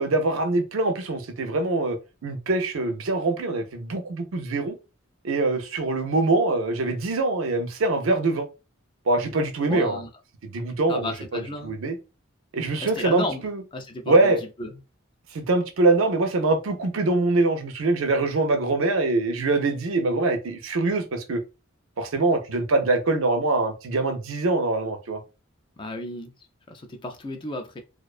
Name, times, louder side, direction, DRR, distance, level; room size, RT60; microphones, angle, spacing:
voice 1, 0.0-2.0 2.2-4.8 5.2-8.5 9.1-10.0 10.4-12.0 12.5-13.6 14.1-14.4 15.3-21.4 22.0-25.2, right 2 dB, 75° right, 0.5 m, -24 dB
voice 2, 9.7-10.1 10.9-11.7 12.8-13.5 13.7-14.3 14.6-14.7 25.8-26.3 26.7-27.8, left 1 dB, 25° left, 0.3 m, -33 dB
2.4 x 2.1 x 2.4 m
head